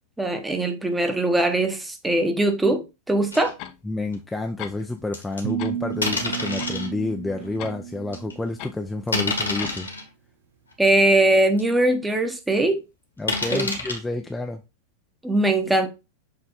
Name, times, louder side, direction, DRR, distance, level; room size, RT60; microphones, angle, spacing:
voice 1, 0.2-3.5 10.8-12.8 13.5-13.8 15.2-15.9, right 1 dB, 5° right, 1.0 m, -21 dB
sound 1, 3.3-3.5 4.1-4.2 5.1-5.4 6.0-6.9 7.5-7.6 8.1-8.3 9.1-10.0 10.7-10.8 11.3-11.4 11.6-11.7 13.3-14.0, left 2 dB, 75° left, 1.7 m, -27 dB
sound 2, 3.6-3.8 4.6-5.1 5.4-5.8 6.6-7.8 8.6-8.8 9.6-9.9, left 11 dB, 40° left, 0.7 m, -38 dB
voice 2, 3.8-9.9 13.2-14.6, left 2 dB, 10° left, 0.6 m, -29 dB
sound 3, 5.4-8.6, right 9 dB, 60° right, 0.4 m, -32 dB
6.8 x 3.4 x 4.0 m
figure-of-eight pair, 90°, 0 cm